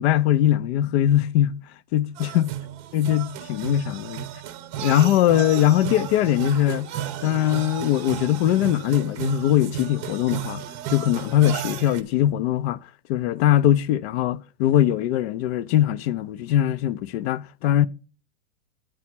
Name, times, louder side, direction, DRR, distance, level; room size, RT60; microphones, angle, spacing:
voice 1, 0.0-1.6 1.9-2.5 2.9-4.3 4.8-6.9 7.2-12.8 13.1-17.9, left 12 dB, 45° left, 0.5 m, -21 dB
sound 1, 2.2-12.0, right 11 dB, 30° right, 0.7 m, -33 dB
8.6 x 5.6 x 5.8 m
supercardioid pair, 140°, 44 cm